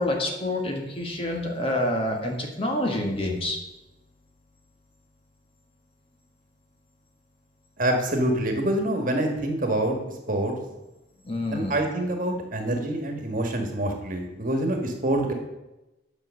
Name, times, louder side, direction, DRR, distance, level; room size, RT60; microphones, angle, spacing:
voice 1, 0.0-3.6 11.2-11.8, left 1 dB, 30° left, 1 dB, 1.4 m, -27 dB
voice 2, 7.8-10.0 10.3-10.5 11.5-15.3, right 1 dB, 45° right, 3 dB, 1.6 m, -26 dB
8.7 x 6.2 x 6.4 m, 1.0 s
head